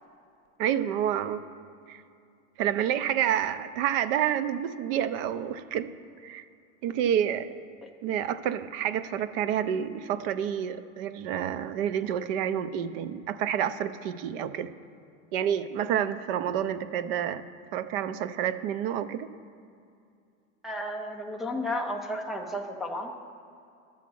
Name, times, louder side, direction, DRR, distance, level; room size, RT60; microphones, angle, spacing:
voice 1, 0.6-1.5 1.9-2.0 2.6-5.9 6.2-6.4 6.8-7.6 8.0-14.7 15.3-17.4 17.7-19.3, right 9 dB, 45° right, 13 dB, 0.6 m, -29 dB
voice 2, 20.6-23.2, left 1 dB, ahead, 0 dB, 0.3 m, -33 dB
12.5 x 7.2 x 6.1 m, 2.5 s
supercardioid pair, 140°, 39 cm